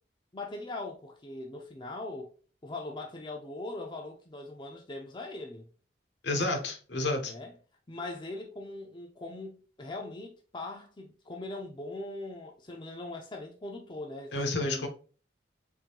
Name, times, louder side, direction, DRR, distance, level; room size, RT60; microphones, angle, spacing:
voice 1, 0.3-2.3 2.6-5.7 7.2-7.5 7.9-14.9, left 2 dB, 25° left, 0.5 m, -41 dB
voice 2, 6.2-7.3 14.3-14.9, left 2 dB, 70° left, 0.9 m, -30 dB
3.6 x 3.2 x 2.9 m
head